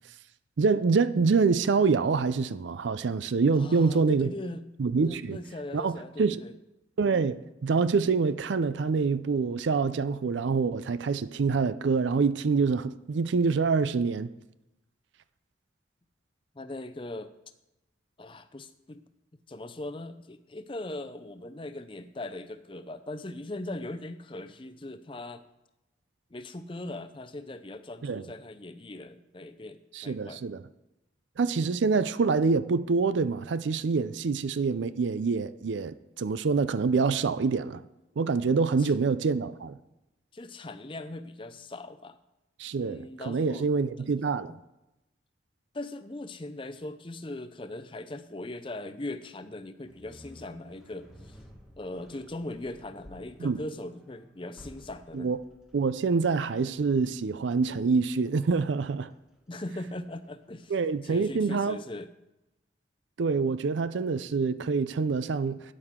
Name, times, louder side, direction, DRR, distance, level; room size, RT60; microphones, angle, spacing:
voice 1, 0.6-4.3 4.8-5.4 5.7-6.4 7.0-14.3 28.0-28.2 29.9-30.6 31.4-37.8 38.2-39.8 42.6-44.5 53.4-53.6 55.1-55.4 55.7-59.1 60.7-61.8 63.2-65.6, right 4 dB, 70° right, 0.4 m, -26 dB
voice 2, 3.5-4.7 5.1-6.5 16.5-17.3 18.2-19.1 19.5-25.4 26.3-30.4 38.6-38.9 40.3-42.2 42.8-43.7 44.5-44.6 45.7-51.4 51.8-55.3 59.5-60.7 61.0-62.1, left 2 dB, 25° left, 0.5 m, -40 dB
sound 1, 49.8-61.0, equal, 5° right, 1.5 m, -55 dB
12.5 x 9.7 x 3.7 m
head